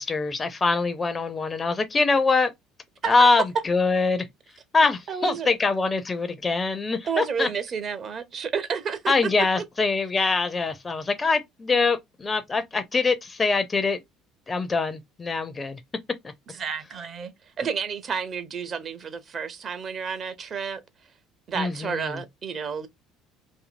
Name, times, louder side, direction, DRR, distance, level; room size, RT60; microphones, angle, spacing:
voice 1, 0.0-2.5 3.1-4.2 4.7-7.5 9.1-14.0 14.5-15.8 21.5-22.2, left 3 dB, 25° left, 0.4 m, -23 dB
voice 2, 5.1-5.6 7.0-9.1 16.5-17.3 17.6-20.8 21.5-22.9, right 6 dB, 40° right, 0.5 m, -30 dB
2.6 x 2.6 x 2.5 m
figure-of-eight pair, 60°, 0 cm